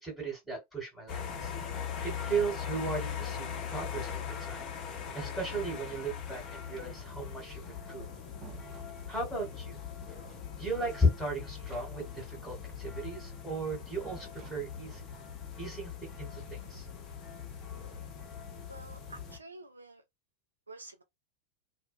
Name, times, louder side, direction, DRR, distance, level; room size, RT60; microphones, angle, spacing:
voice 1, 0.0-1.5 1.8-8.1 9.1-9.8 10.1-15.0 15.6-15.9 16.2-16.9, right 1 dB, 5° left, 1.3 m, -36 dB
sound 1, 1.1-19.4, left 7 dB, 30° left, 0.6 m, -41 dB
sound 2, 5.6-6.5 7.7-9.6 11.4-12.3 12.5-12.6 14.0-15.2, right 12 dB, 35° right, 0.8 m, -55 dB
voice 2, 18.7-20.0 20.7-21.0, right 2 dB, 80° right, 0.3 m, -49 dB
2.3 x 2.2 x 2.5 m
figure-of-eight pair, 90°, 0 cm